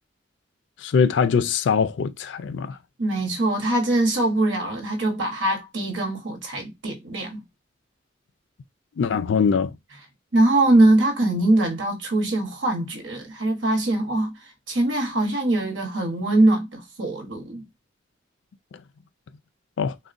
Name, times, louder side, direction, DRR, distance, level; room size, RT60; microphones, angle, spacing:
voice 1, 0.8-2.8 9.0-9.8 19.8-20.0, left 6 dB, 70° left, 0.3 m, -22 dB
voice 2, 3.0-7.4 10.3-17.6, right 2 dB, 75° right, 1.0 m, -22 dB
3.6 x 2.2 x 2.4 m
head